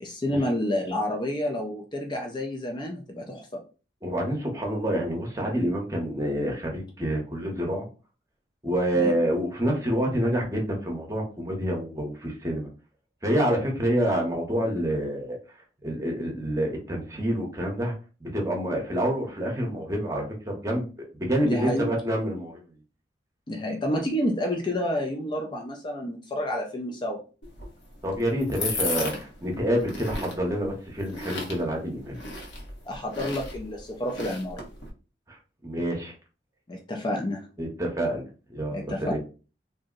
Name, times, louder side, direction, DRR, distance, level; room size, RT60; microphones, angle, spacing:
voice 1, 0.0-3.6 9.0-9.1 21.4-21.8 23.5-27.2 32.9-34.6 36.7-37.5 38.7-39.2, left 1 dB, 25° left, 2 dB, 0.4 m, -29 dB
voice 2, 4.0-7.9 8.6-12.7 13.2-15.4 15.8-17.9 18.2-22.6 28.0-32.2 35.6-36.1 37.6-38.2 38.5-39.2, equal, 15° right, 0 dB, 0.8 m, -27 dB
sound 1, 27.4-34.9, left 2 dB, 90° left, 0.9 m, -36 dB
2.6 x 2.0 x 3.7 m, 0.35 s
head